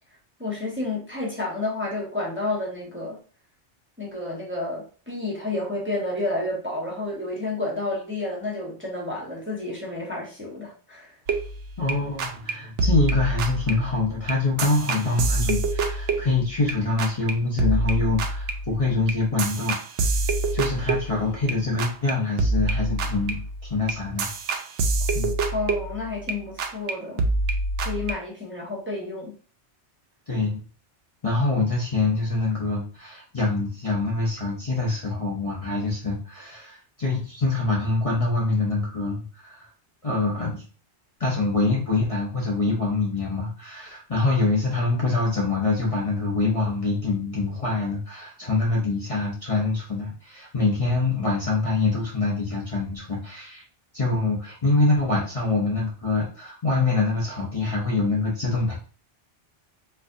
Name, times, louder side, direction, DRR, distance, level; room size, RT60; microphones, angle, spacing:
voice 1, 0.4-3.2 4.0-11.1 25.5-27.2 27.8-29.3, left 2 dB, 10° right, -4 dB, 0.8 m, -30 dB
sound 1, 11.3-11.9 12.2-12.5 12.8-16.7 17.0-17.3 17.6-21.5 21.8-22.1 22.4-26.3 26.6-26.9 27.2-28.1, right 3 dB, 80° right, 0.9 m, -26 dB
voice 2, 11.8-20.1 20.5-24.3 25.1-25.3 30.3-30.6 31.2-39.7 40.0-40.6 41.2-53.6 53.9-58.8, left 3 dB, 35° left, -4 dB, 0.7 m, -25 dB
4.4 x 2.5 x 2.6 m, 0.40 s
omnidirectional pair, 1.2 m